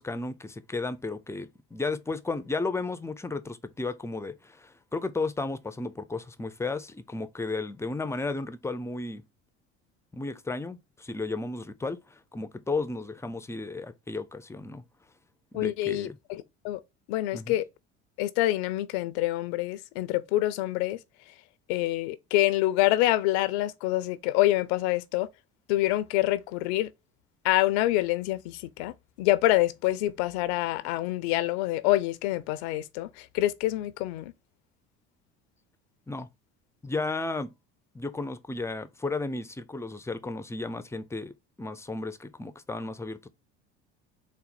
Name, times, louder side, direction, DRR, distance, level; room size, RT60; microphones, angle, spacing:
voice 1, 0.0-9.2 10.1-14.8 15.5-16.2 17.3-17.5 36.1-36.3 36.8-37.5 37.9-41.3 41.6-43.3, left 3 dB, 10° left, 0.4 m, -34 dB
voice 2, 15.5-16.8 17.1-17.7 18.2-21.0 21.3-21.4 21.7-25.3 25.7-26.9 27.4-34.3, left 16 dB, 75° left, 0.5 m, -26 dB
4.1 x 2.0 x 4.0 m
hypercardioid pair, 80°, 33 cm